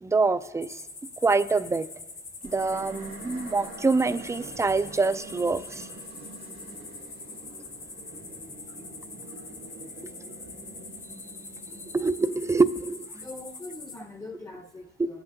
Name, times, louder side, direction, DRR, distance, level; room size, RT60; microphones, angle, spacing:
voice 1, 0.0-0.8 1.2-1.9 2.4-5.9 11.9-13.1 15.0-15.1, right 3 dB, 15° right, 13 dB, 0.4 m, -25 dB
sound 1, 0.6-14.0, left 3 dB, 65° left, 1.8 m, -44 dB
sound 2, 2.4-13.8, right 3 dB, 80° right, 1.4 m, -46 dB
voice 2, 13.1-15.2, left 2 dB, 15° left, 4 dB, 0.8 m, -42 dB
22.0 x 8.1 x 2.6 m, 1.1 s
cardioid pair, 85°, 21 cm